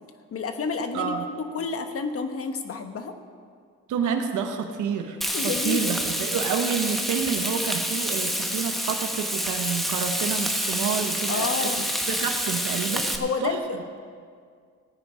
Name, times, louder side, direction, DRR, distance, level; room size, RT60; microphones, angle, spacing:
voice 1, 0.3-3.2 5.3-6.1 11.3-11.9 13.2-14.0, left 4 dB, 50° left, 7 dB, 1.2 m, -30 dB
voice 2, 0.9-1.3 3.9-13.1 13.4-14.0, right 7 dB, 80° right, 5 dB, 1.3 m, -29 dB
Frying (food), 5.2-13.2, equal, ahead, 1.2 m, -28 dB
16.5 x 9.2 x 5.0 m, 2.1 s
cardioid pair, 90°, 30 cm